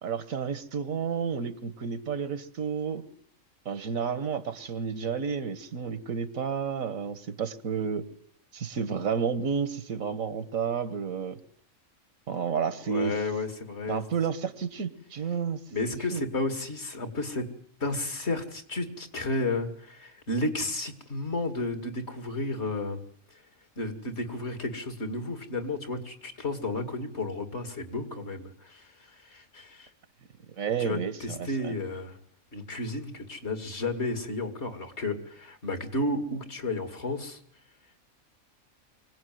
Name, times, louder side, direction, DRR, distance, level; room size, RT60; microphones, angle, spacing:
voice 1, 0.0-3.0 3.6-8.1 8.5-11.4 12.3-13.2 13.9-15.6 16.1-16.2 30.6-31.7, right 6 dB, 80° right, 14 dB, 1.7 m, -31 dB
voice 2, 12.9-14.0 15.7-17.5 17.8-23.0 23.8-29.9 30.8-32.2 32.5-37.4, left 2 dB, 55° left, 8 dB, 2.6 m, -32 dB
24.5 x 18.0 x 9.3 m, 0.64 s
omnidirectional pair, 1.4 m